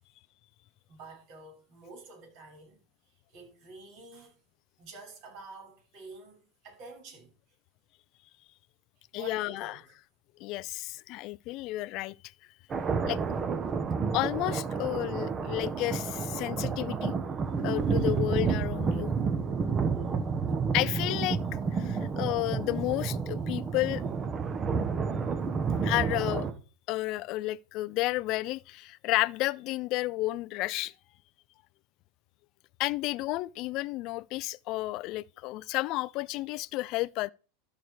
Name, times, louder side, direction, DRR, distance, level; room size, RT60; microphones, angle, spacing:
voice 1, 0.9-4.3 4.8-7.3 9.1-10.0, right 3 dB, 55° right, 5.9 m, -49 dB
voice 2, 9.1-9.8 10.4-12.2 13.1-13.2 14.1-17.1 17.6-19.1 20.7-21.4 21.7-24.0 25.8-26.5 26.9-30.9 32.8-37.3, left 18 dB, 50° left, 0.4 m, -31 dB
sound 1, 12.7-26.5, right 5 dB, 25° right, 1.2 m, -30 dB
13.0 x 4.8 x 4.8 m
hypercardioid pair, 105°, 0 cm